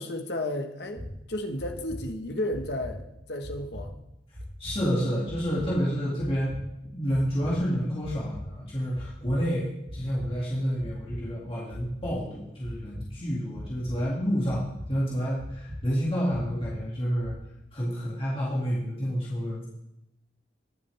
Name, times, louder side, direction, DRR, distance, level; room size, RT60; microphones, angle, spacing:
voice 1, 0.0-3.0 3.3-3.9, left 1 dB, 65° left, 4 dB, 1.4 m, -33 dB
sound 1, 1.0-1.1 1.6-2.0 2.5-2.9 3.4-3.8 4.3-4.8 5.3-5.7 6.2-6.6 7.1-7.5 8.0-8.4 8.9-9.4 9.9-10.3 10.8-11.2 11.7-12.1 12.6-13.0 13.5-14.0 14.5-14.9 15.4-15.8 16.3-16.7 17.2-17.3, left 1 dB, 75° right, 3.7 m, -39 dB
voice 2, 4.6-6.6 6.9-17.3 17.7-19.7, equal, 30° left, -6 dB, 2.4 m, -29 dB
20.0 x 7.5 x 3.5 m, 0.86 s
head